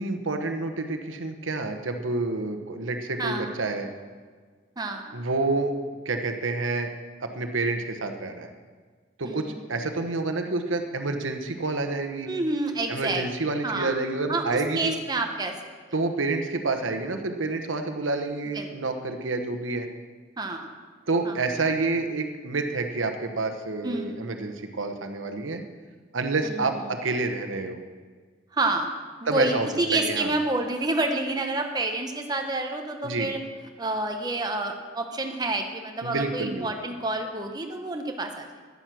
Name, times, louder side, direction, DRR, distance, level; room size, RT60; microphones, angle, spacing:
voice 1, 0.0-3.9 5.1-5.7 6.0-6.9 7.2-8.5 9.2-12.3 12.9-14.9 15.9-19.9 21.1-25.6 26.1-27.8 29.3-30.3 33.0-33.3 36.0-36.9, right 3 dB, 90° right, 6 dB, 1.1 m, -28 dB
voice 2, 3.2-3.5 4.8-5.1 9.2-9.4 12.3-13.2 13.6-13.9 14.3-14.4 14.7-15.5 18.5-18.7 20.4-20.7 21.2-21.4 23.8-24.2 26.4-26.8 28.5-28.9 29.2-33.4 33.8-38.4, right 2 dB, 20° right, 4 dB, 0.9 m, -28 dB
10.5 x 9.7 x 6.2 m, 1.5 s
head